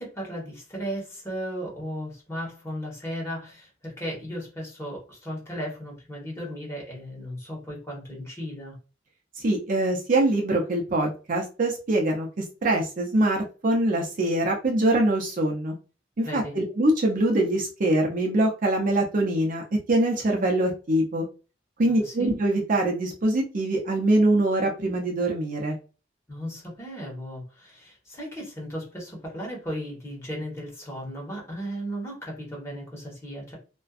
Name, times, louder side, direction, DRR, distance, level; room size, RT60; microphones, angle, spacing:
voice 1, 0.0-8.8 16.2-16.5 21.9-22.3 26.3-33.5, equal, 15° left, -3 dB, 1.1 m, -35 dB
voice 2, 9.4-12.3 12.6-15.7 16.2-19.6 19.9-21.3 21.8-25.7, right 1 dB, 45° right, 1 dB, 0.5 m, -23 dB
2.5 x 2.2 x 2.4 m, 0.33 s
head